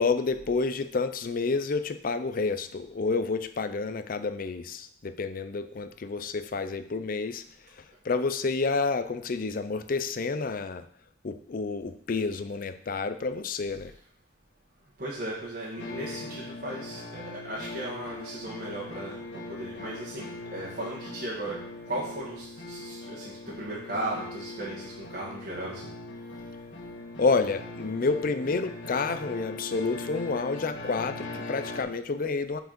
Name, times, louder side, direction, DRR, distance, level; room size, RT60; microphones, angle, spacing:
voice 1, 0.0-7.4 7.8-10.9 11.2-13.9 27.2-32.6, left 4 dB, 50° left, 11 dB, 0.5 m, -29 dB
voice 2, 15.0-19.2 19.5-21.6 21.9-25.9, right 1 dB, 50° right, -6 dB, 1.6 m, -36 dB
sound 1, 15.8-31.8, left 2 dB, 80° left, 1.6 m, -40 dB
6.4 x 4.8 x 5.1 m, 0.62 s
head